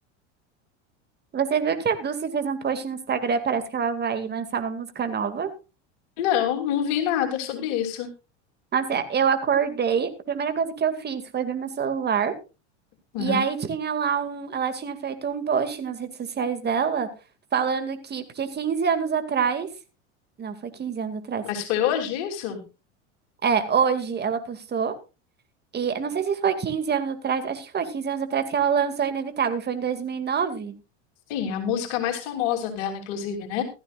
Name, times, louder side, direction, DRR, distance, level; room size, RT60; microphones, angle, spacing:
voice 1, 1.3-5.5 8.7-12.3 13.2-17.1 17.5-19.7 20.4-21.4 23.4-24.9 25.7-30.7, right 6 dB, 30° right, 9 dB, 2.3 m, -26 dB
voice 2, 6.2-8.1 13.1-13.4 21.4-22.6 31.3-33.6, left 9 dB, 65° left, 5 dB, 3.1 m, -26 dB
16.0 x 13.5 x 2.5 m, 0.29 s
hypercardioid pair, 95°, 36 cm